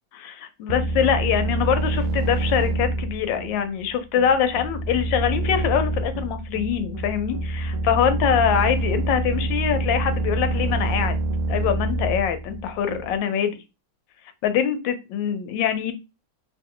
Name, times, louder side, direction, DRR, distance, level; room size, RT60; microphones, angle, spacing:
voice 1, 0.3-11.2 11.5-13.6 14.4-15.9, left 8 dB, 85° left, 9 dB, 1.3 m, -24 dB
sound 1, 0.7-13.2, right 2 dB, 75° right, 0.8 m, -26 dB
2.9 x 2.6 x 3.6 m, 0.26 s
omnidirectional pair, 1.9 m